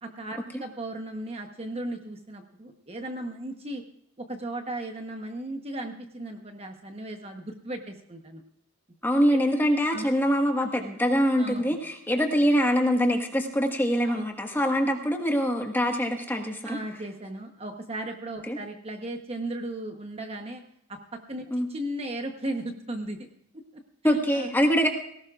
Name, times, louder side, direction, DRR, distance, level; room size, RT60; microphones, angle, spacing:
voice 1, 0.0-3.8 4.2-8.4 9.3-9.4 9.9-10.1 11.3-11.8 14.0-14.2 16.6-20.6 20.9-21.0 21.3-21.4 21.7-23.3 23.5-24.5, right 1 dB, 25° right, 4 dB, 1.0 m, -36 dB
voice 2, 9.0-16.8 18.5-18.6 21.5-21.7 24.0-24.9, equal, 10° left, 2 dB, 1.5 m, -24 dB
19.0 x 17.0 x 2.5 m, 0.69 s
head